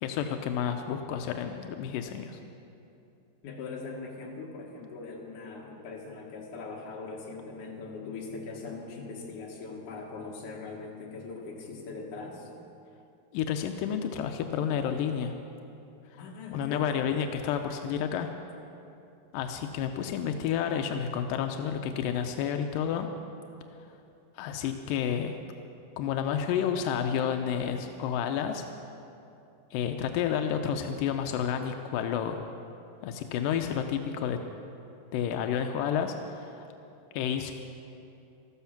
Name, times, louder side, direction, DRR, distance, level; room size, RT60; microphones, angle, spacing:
voice 1, 0.0-2.4 13.3-15.3 16.5-18.3 19.3-23.1 24.4-25.4 26.0-28.7 29.7-32.4 33.0-34.4 35.1-36.7 37.1-37.5, left 8 dB, 80° left, 6 dB, 2.0 m, -30 dB
voice 2, 3.4-12.5 16.2-17.0, left 4 dB, 55° left, -1 dB, 2.9 m, -41 dB
14.0 x 14.0 x 5.8 m, 2.7 s
omnidirectional pair, 4.6 m